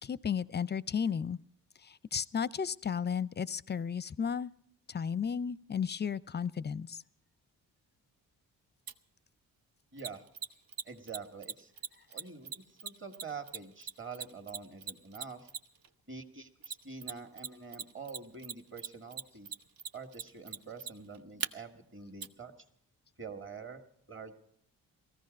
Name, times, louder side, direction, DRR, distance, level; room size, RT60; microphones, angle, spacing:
voice 1, 0.0-1.4 1.8-4.5 4.9-7.0, left 7 dB, 25° left, 19 dB, 0.5 m, -34 dB
Mechanisms, 8.9-9.0 10.0-15.9 16.6-17.5 17.7-21.5 22.2-22.3, right 6 dB, 55° right, 0.9 m, -39 dB
voice 2, 9.9-10.2 10.9-11.7 12.1-15.5 16.1-19.5 19.9-22.5 23.2-23.8 24.1-24.3, right 5 dB, 30° right, 5 dB, 2.0 m, -46 dB
18.0 x 14.5 x 5.3 m, 0.68 s
hypercardioid pair, 45°, 41 cm